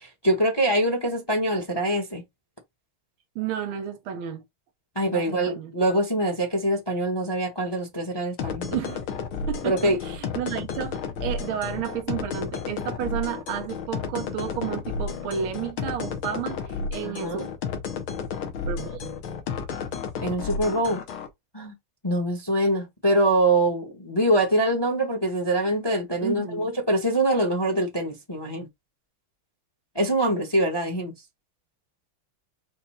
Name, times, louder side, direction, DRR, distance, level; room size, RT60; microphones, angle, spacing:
voice 1, 0.0-2.2 4.9-8.7 9.6-10.0 17.0-17.5 20.2-21.0 21.5-21.7 22.0-28.7 29.9-31.1, right 1 dB, 15° left, 0.8 m, -24 dB
voice 2, 3.4-4.4 5.1-5.7 8.7-9.0 9.5-17.5 18.7-19.2 26.2-26.7, right 9 dB, 85° right, 1.7 m, -32 dB
sound 1, 8.4-21.3, left 5 dB, 80° left, 1.7 m, -32 dB
5.3 x 2.2 x 4.2 m
omnidirectional pair, 2.2 m